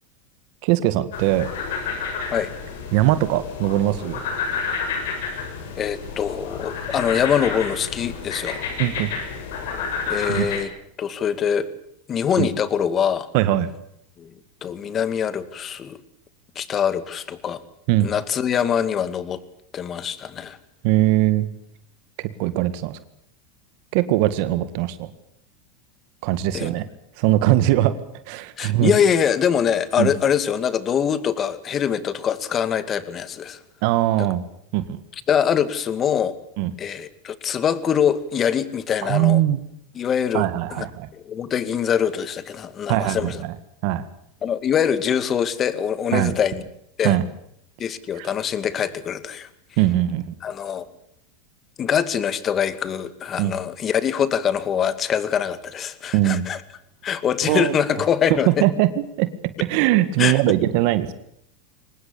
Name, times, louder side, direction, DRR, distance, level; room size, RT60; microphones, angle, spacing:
voice 1, 0.6-1.5 2.9-4.2 8.8-9.1 10.3-10.5 12.4-12.5 13.3-13.7 17.9-18.1 20.8-21.5 22.2-23.0 23.9-25.1 26.2-26.8 27.2-27.9 28.3-28.9 30.0-30.1 33.8-34.4 34.7-35.0 36.6-36.7 39.0-39.6 40.3-41.1 42.9-43.5 43.8-44.1 46.1-46.3 47.0-47.2 48.2-48.3 49.8-50.3 53.4-53.6 56.1-56.4 57.5-57.8 58.3-58.9 59.2-59.3 59.7-61.1, right 15 dB, 60° right, 13 dB, 1.9 m, -20 dB
sound 1, 1.1-10.6, left 5 dB, 80° left, 7.2 m, -30 dB
voice 2, 5.8-8.6 10.1-10.7 11.0-11.7 12.1-13.3 14.2-14.3 14.6-16.0 16.6-17.6 18.0-19.4 19.7-20.6 26.5-26.7 28.6-33.6 34.2-34.3 35.3-36.4 36.8-39.4 39.9-40.9 41.1-43.4 44.4-46.6 47.0-47.2 47.8-49.5 50.4-50.8 51.8-56.6 57.0-58.7 60.2-60.4, left 8 dB, 30° left, 14 dB, 2.2 m, -23 dB
24.0 x 20.0 x 8.5 m, 0.72 s
supercardioid pair, 125°, 0 cm